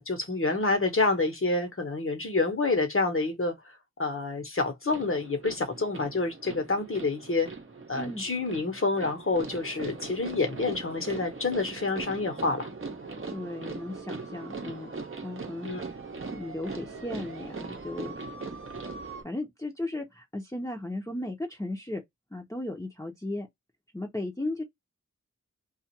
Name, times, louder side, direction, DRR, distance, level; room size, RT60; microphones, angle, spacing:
voice 1, 0.0-7.5 7.9-12.7 15.6-15.8, left 3 dB, 45° left, 1.1 m, -28 dB
sound 1, 4.9-19.2, right 4 dB, 45° right, 0.8 m, -40 dB
voice 2, 7.9-8.2 13.3-14.9 15.2-15.9 16.3-18.2 19.2-22.0 22.3-23.5 23.9-24.6, left 1 dB, 10° left, 0.8 m, -35 dB
2.4 x 2.3 x 2.8 m
wide cardioid pair, 55°, 30 cm